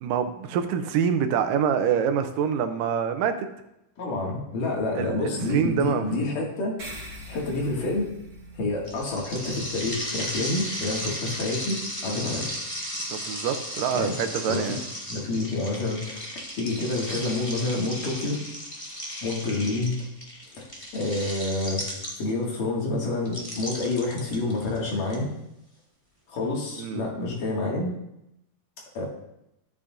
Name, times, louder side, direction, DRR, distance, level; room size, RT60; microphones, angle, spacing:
voice 1, 0.0-3.5 5.0-6.0 13.1-14.8 26.8-27.0, right 7 dB, 80° right, 7 dB, 2.3 m, -26 dB
voice 2, 4.0-6.7 7.3-8.0 8.6-11.8 12.0-12.5 13.9-14.2 14.5-14.8 15.1-16.3 16.6-18.4 19.2-20.0 20.5-20.6 20.9-21.8 22.2-25.3 26.3-27.9 29.0-29.1, left 2 dB, 75° left, -3 dB, 3.6 m, -28 dB
sound 1, 6.8-11.6, equal, 40° right, 1.1 m, -45 dB
sound 2, 8.8-22.5 23.2-25.1, equal, 35° left, 0.5 m, -35 dB
13.0 x 8.5 x 2.6 m, 0.83 s
omnidirectional pair, 3.9 m